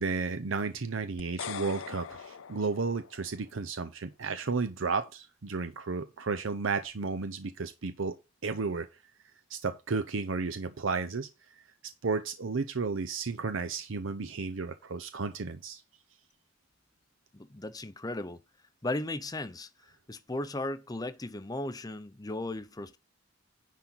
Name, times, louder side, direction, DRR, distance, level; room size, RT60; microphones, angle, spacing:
voice 1, 0.0-8.1 8.4-8.9 9.5-11.3 12.0-15.8, right 4 dB, 70° right, 0.7 m, -33 dB
sound 1, 1.2-3.5, left 7 dB, 75° left, 0.5 m, -42 dB
voice 2, 17.3-18.4 18.8-19.7 20.1-23.0, left 2 dB, 20° left, 0.6 m, -36 dB
10.5 x 4.0 x 5.6 m
head